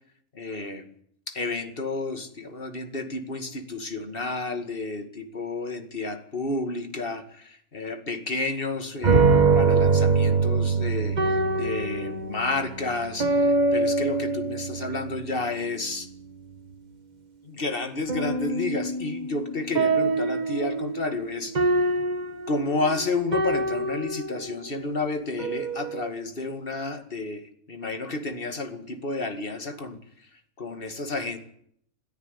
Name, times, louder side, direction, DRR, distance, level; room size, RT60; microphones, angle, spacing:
voice 1, 0.3-0.9 1.3-16.1 17.4-21.9 22.5-30.0 30.6-31.4, left 3 dB, 40° left, 7 dB, 2.4 m, -31 dB
sound 1, 9.0-15.5 18.1-24.5 25.4-26.0, right 3 dB, 30° right, 1.3 m, -24 dB
22.0 x 13.5 x 9.8 m, 0.67 s
omnidirectional pair, 1.5 m